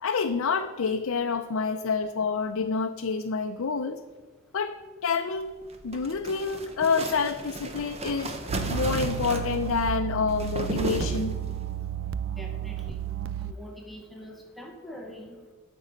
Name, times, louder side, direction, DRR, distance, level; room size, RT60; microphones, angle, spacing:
voice 1, 0.0-4.0 4.5-4.8 5.0-5.5 5.8-8.3 8.7-11.4, left 5 dB, 90° left, 5 dB, 0.5 m, -28 dB
sound 1, 5.6-11.7, right 1 dB, 30° right, 0.9 m, -34 dB
sound 2, 8.5-13.5, right 10 dB, 65° right, 0.3 m, -32 dB
voice 2, 12.4-13.0 13.4-15.4, left 1 dB, ahead, 0 dB, 1.0 m, -44 dB
9.0 x 5.4 x 8.0 m, 1.3 s
head